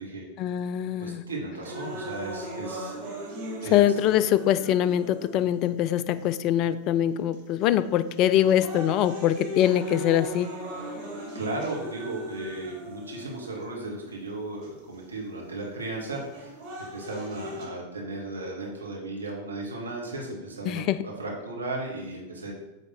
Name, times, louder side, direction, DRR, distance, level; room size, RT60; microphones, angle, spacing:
voice 1, 0.4-1.2 3.6-10.5 20.7-21.1, left 11 dB, 40° left, 14 dB, 0.3 m, -23 dB
voice 2, 1.0-2.9 3.6-3.8 11.3-22.5, right 2 dB, 75° right, -2 dB, 1.4 m, -35 dB
sound 1, 1.6-5.6 6.4-6.5 7.3-7.6 8.1-13.6 14.6-14.7 16.1-17.6, equal, 40° right, 2.3 m, -38 dB
8.2 x 3.5 x 4.2 m, 1.0 s
figure-of-eight pair, 90°, 0 cm